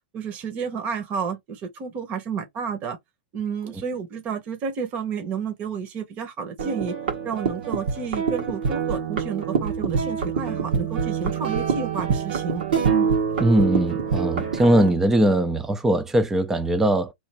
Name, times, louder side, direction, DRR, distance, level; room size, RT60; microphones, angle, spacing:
voice 1, 0.1-3.0 3.3-7.0 7.2-12.6 12.9-13.1, right 6 dB, 30° right, 0.9 m, -31 dB
sound 1, 6.6-14.9, right 6 dB, 80° right, 1.5 m, -25 dB
voice 2, 13.4-17.1, right 1 dB, 5° right, 0.5 m, -20 dB
3.3 x 2.6 x 4.2 m
supercardioid pair, 155°, 6 cm